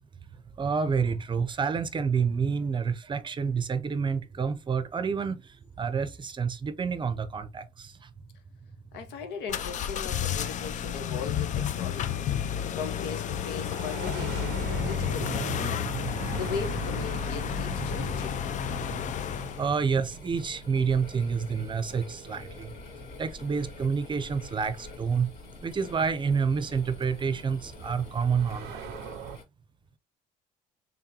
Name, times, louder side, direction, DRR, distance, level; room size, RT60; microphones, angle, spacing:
voice 1, 0.6-5.4 5.8-7.9 19.6-22.7 23.2-25.3 25.6-28.8, right 6 dB, 30° right, 0.6 m, -28 dB
voice 2, 8.9-18.4, left 6 dB, 85° left, 1.1 m, -39 dB
sound 1, 9.5-19.6, left 9 dB, 45° left, 0.5 m, -31 dB
sound 2, 12.6-23.2 24.5-24.6 25.6-29.4, right 10 dB, 80° right, 0.5 m, -41 dB
sound 3, 16.4-29.4, left 3 dB, 65° left, 2.3 m, -46 dB
3.7 x 3.6 x 2.8 m
cardioid pair, 110°, 17 cm